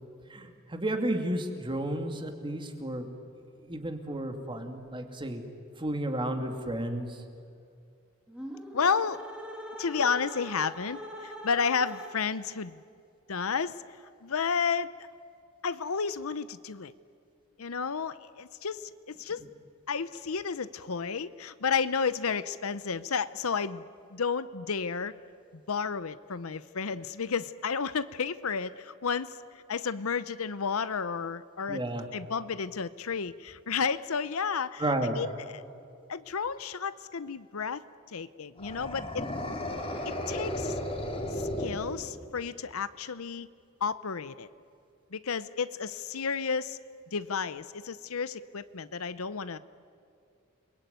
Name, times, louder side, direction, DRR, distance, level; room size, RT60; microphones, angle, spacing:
voice 1, 0.3-3.1 3.7-5.4 5.8-7.2 19.4-19.5 31.7-32.0 34.8-35.2, right 1 dB, 25° right, 5 dB, 2.5 m, -32 dB
sound 1, 8.3-12.5, equal, 5° right, 3.0 m, -43 dB
voice 2, 8.7-9.3 9.8-12.8 13.3-13.8 14.2-15.1 15.6-16.9 17.6-19.4 19.9-23.8 24.1-25.1 25.7-29.4 29.7-31.8 32.1-35.3 35.5-35.6 36.1-37.8 38.1-39.3 40.0-40.8 41.3-43.5 43.8-44.5 45.1-46.8 47.1-49.6, left 5 dB, 70° left, 15 dB, 0.8 m, -32 dB
sound 2, 38.6-42.4, left 1 dB, 25° left, 3.2 m, -34 dB
29.5 x 21.5 x 9.4 m, 2.4 s
head